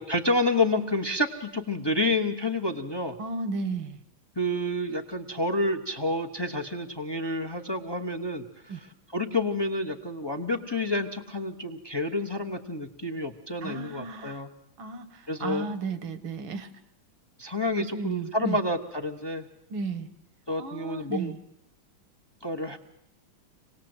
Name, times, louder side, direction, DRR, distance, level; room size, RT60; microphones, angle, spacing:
voice 1, 0.0-3.2 4.4-14.5 15.3-15.7 17.4-19.5 20.5-21.3 22.4-22.8, left 2 dB, 25° left, 5 dB, 0.5 m, -29 dB
voice 2, 3.2-4.0 8.7-8.8 13.6-14.4 14.8-16.7 17.8-18.6 19.7-20.1 20.6-21.4, right 4 dB, 75° right, 12 dB, 2.0 m, -34 dB
26.0 x 19.0 x 7.9 m, 0.83 s
omnidirectional pair, 2.2 m